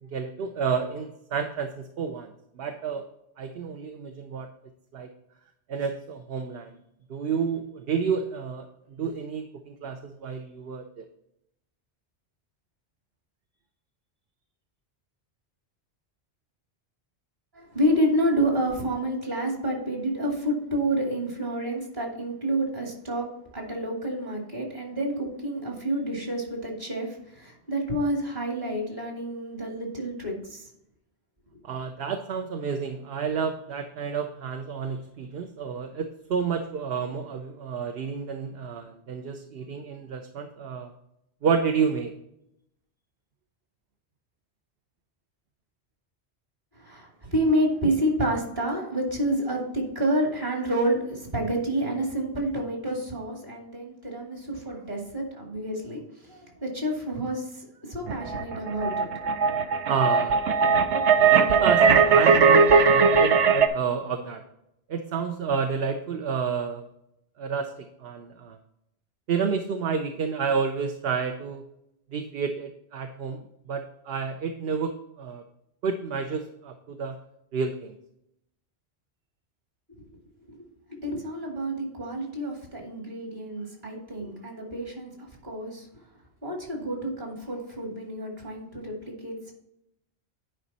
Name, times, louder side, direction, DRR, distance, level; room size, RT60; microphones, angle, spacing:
voice 1, 0.0-3.0 3.4-4.5 4.9-5.1 5.7-6.8 7.1-8.7 9.0-11.1 31.6-40.9 41.4-42.1 59.8-60.4 61.1-64.4 64.9-66.9 67.4-67.7 68.0-68.6 69.3-71.6 72.1-75.4 75.8-77.2 77.5-77.9, right 6 dB, 65° right, 5 dB, 0.9 m, -30 dB
voice 2, 17.5-30.7 46.8-59.1 59.5-59.6 80.5-85.9 86.4-89.5, right 1 dB, 45° right, 0 dB, 2.4 m, -29 dB
sound 1, 58.1-63.7, right 5 dB, 85° right, 1.0 m, -19 dB
10.0 x 5.1 x 4.1 m, 0.81 s
omnidirectional pair, 1.1 m